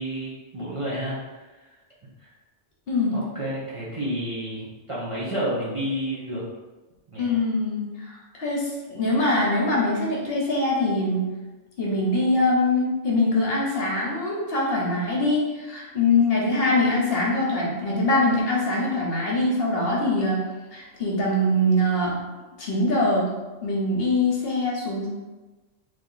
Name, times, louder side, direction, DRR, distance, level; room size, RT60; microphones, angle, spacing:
voice 1, 0.0-1.6 2.2-2.3 3.1-6.4 7.1-7.3, equal, 30° right, -8 dB, 0.7 m, -30 dB
voice 2, 7.2-11.3 11.8-20.4 20.7-22.2 22.6-23.3 23.6-25.1, left 2 dB, 55° left, -3 dB, 1.0 m, -23 dB
3.2 x 2.8 x 3.8 m, 1.2 s
omnidirectional pair, 1.2 m